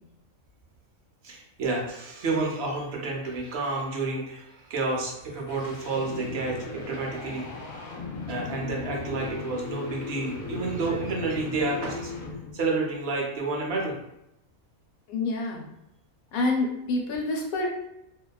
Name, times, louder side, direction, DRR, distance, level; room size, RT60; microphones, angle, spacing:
voice 1, 1.2-7.5 8.3-12.1 12.5-14.0, right 3 dB, 65° right, -1 dB, 0.6 m, -30 dB
sound 1, 5.0-12.7, left 3 dB, 55° left, 0.7 m, -37 dB
voice 2, 15.1-15.6 16.3-17.7, left 2 dB, 80° left, 1 dB, 1.0 m, -27 dB
2.5 x 2.2 x 2.3 m, 0.85 s
omnidirectional pair, 1.5 m